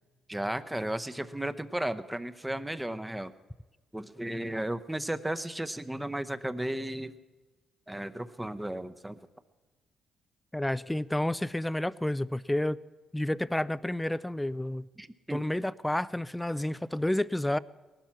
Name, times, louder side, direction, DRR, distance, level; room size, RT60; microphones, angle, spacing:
voice 1, 0.3-3.3 3.9-7.2 7.9-9.2 15.0-15.4, right 1 dB, 10° right, 11 dB, 0.8 m, -34 dB
voice 2, 10.5-12.8 13.1-14.9 15.3-17.6, left 1 dB, 5° left, 18 dB, 0.4 m, -30 dB
19.5 x 12.0 x 5.9 m, 1.3 s
cardioid pair, 90°, 0 cm